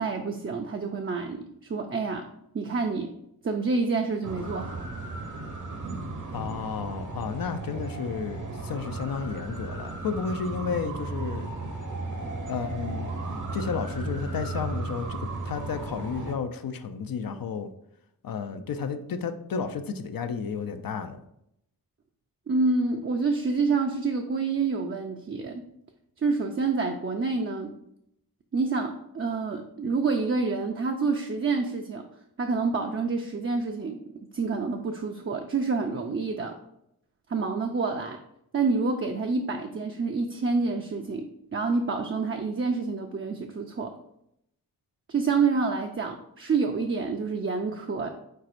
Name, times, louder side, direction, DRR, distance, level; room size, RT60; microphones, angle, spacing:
voice 1, 0.0-2.3 2.5-3.1 3.4-4.9 22.5-25.6 26.2-27.7 28.5-32.1 32.4-36.6 37.3-38.2 38.5-43.9 45.1-48.1, right 4 dB, 35° right, 0.5 m, -28 dB
sound 1, 4.2-16.3, right 3 dB, 50° right, 0.9 m, -35 dB
voice 2, 6.3-11.5 12.4-17.7 18.2-21.2, left 6 dB, 65° left, 0.5 m, -32 dB
4.5 x 4.0 x 2.5 m
cardioid pair, 40°, 38 cm